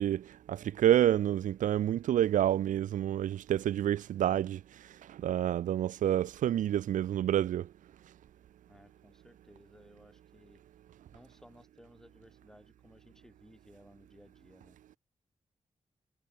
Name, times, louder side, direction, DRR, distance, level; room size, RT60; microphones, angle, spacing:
voice 1, 0.0-4.6 5.1-7.7, right 11 dB, 85° right, 0.5 m, -28 dB
voice 2, 8.7-10.6 11.1-14.8, equal, 5° left, 3.6 m, -59 dB
cardioid pair, 50°, 13 cm